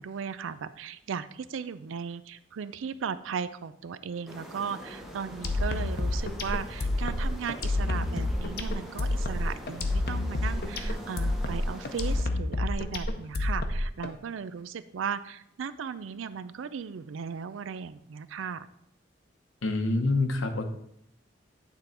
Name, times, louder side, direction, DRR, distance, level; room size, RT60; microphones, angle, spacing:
voice 1, 0.0-18.7, right 6 dB, 85° right, 14 dB, 0.4 m, -36 dB
sound 1, 4.3-12.3, equal, ahead, 0.8 m, -43 dB
sound 2, 5.4-14.1, left 2 dB, 55° left, 0.7 m, -29 dB
voice 2, 19.6-20.7, left 2 dB, 90° left, 7 dB, 0.8 m, -26 dB
9.0 x 3.7 x 4.3 m, 0.75 s
head